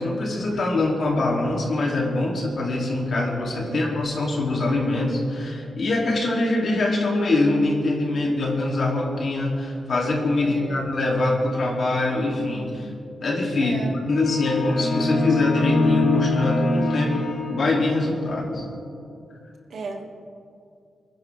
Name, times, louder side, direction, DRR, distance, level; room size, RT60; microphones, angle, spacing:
voice 1, 0.0-12.9 13.2-13.7 14.1-18.6, left 2 dB, 60° left, -1 dB, 2.8 m, -23 dB
voice 2, 10.4-10.8 13.6-13.9 19.7-20.0, right 3 dB, 70° right, 1 dB, 2.0 m, -34 dB
sound 1, 14.1-18.1, left 2 dB, 85° left, 2.9 m, -24 dB
25.0 x 10.5 x 3.5 m, 2.5 s
cardioid pair, 75°, 0 cm